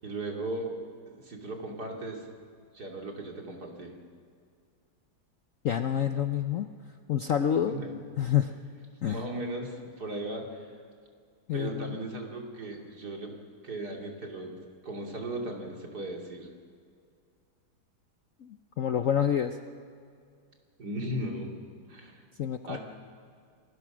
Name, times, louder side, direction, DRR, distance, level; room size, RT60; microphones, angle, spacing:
voice 1, 0.0-0.7 1.1-2.3 2.7-3.9 7.6-8.0 9.0-10.6 11.5-13.3 13.6-14.5 14.8-16.5 20.8-21.5 21.9-22.2 22.6-22.8, right 1 dB, 50° right, 1 dB, 3.3 m, -37 dB
voice 2, 5.6-6.7 7.1-7.7 8.2-8.5 9.0-9.2 11.5-12.0 18.4-19.6 22.4-22.8, left 9 dB, 70° left, 8 dB, 0.7 m, -28 dB
27.5 x 20.0 x 6.2 m, 2.2 s
omnidirectional pair, 2.3 m